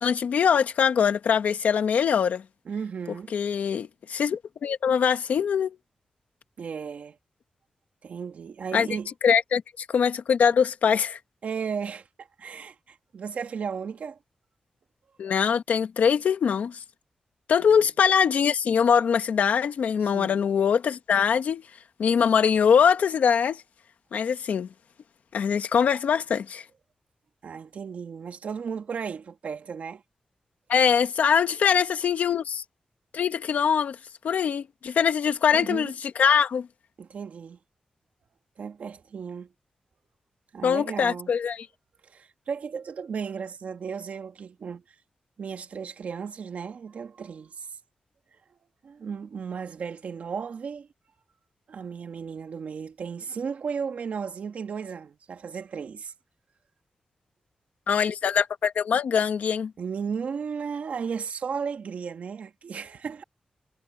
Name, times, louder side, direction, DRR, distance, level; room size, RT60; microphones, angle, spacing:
voice 1, 0.0-2.4 3.3-5.8 8.7-8.9 9.2-11.2 15.2-16.8 17.5-21.6 22.0-23.6 24.1-24.7 25.3-26.6 30.7-32.6 33.1-34.0 34.2-35.9 36.2-36.7 40.6-41.6 57.9-59.7, left 7 dB, 90° left, 1.7 m, -23 dB
voice 2, 2.7-3.3 6.6-7.2 8.0-9.1 11.4-14.2 17.7-17.9 20.0-20.4 27.4-30.0 35.5-35.9 37.0-37.6 38.6-39.5 40.5-41.3 42.0-44.8 45.4-47.7 48.8-50.9 51.7-56.1 59.8-63.2, right 6 dB, 70° right, 2.1 m, -35 dB
wide cardioid pair, 140°, 3 cm